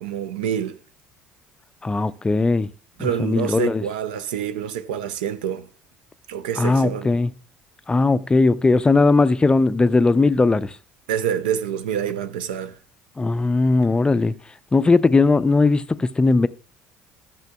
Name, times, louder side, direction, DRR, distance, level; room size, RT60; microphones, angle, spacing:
voice 1, 0.0-0.8 3.0-5.7 6.3-7.1 11.1-12.8, right 9 dB, 80° right, 0.5 m, -27 dB
voice 2, 1.8-2.7 3.0-3.8 6.6-7.3 7.9-10.8 13.2-14.3 14.7-16.5, left 3 dB, 20° left, 0.4 m, -18 dB
13.0 x 6.9 x 2.2 m
hypercardioid pair, 65°, 5 cm